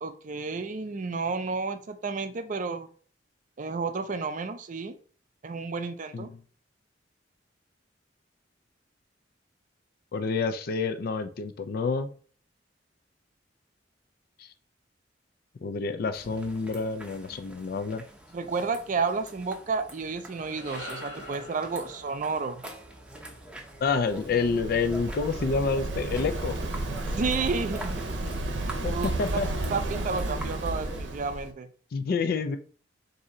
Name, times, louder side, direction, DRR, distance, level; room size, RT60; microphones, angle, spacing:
voice 1, 0.0-2.9 3.6-5.0 5.4-6.3 18.3-22.6 27.1-27.9 28.9-29.1 29.7-31.7, right 4 dB, 45° right, 9 dB, 0.5 m, -31 dB
voice 2, 10.1-12.1 15.6-18.0 23.8-26.6 28.8-29.7 31.9-32.6, left 4 dB, 55° left, 9 dB, 0.4 m, -28 dB
sound 1, 16.1-31.0, right 1 dB, 5° right, 0.7 m, -45 dB
sound 2, 20.1-24.5, left 1 dB, 75° left, 1.4 m, -46 dB
Waves surf, 23.8-31.5, right 2 dB, 90° right, 0.6 m, -32 dB
3.7 x 2.7 x 4.2 m, 0.43 s
head